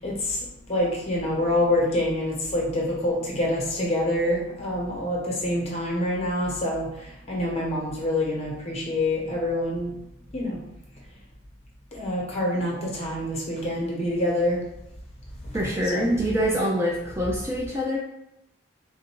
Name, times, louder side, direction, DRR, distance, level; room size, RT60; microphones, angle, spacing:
voice 1, 0.0-0.4 0.7-6.9 7.3-9.9 10.3-10.6 11.9-14.6 15.9-16.1, left 1 dB, 35° left, -3 dB, 1.1 m, -26 dB
voice 2, 15.5-18.0, equal, 15° right, -2 dB, 0.4 m, -25 dB
3.3 x 2.5 x 4.5 m, 0.84 s
head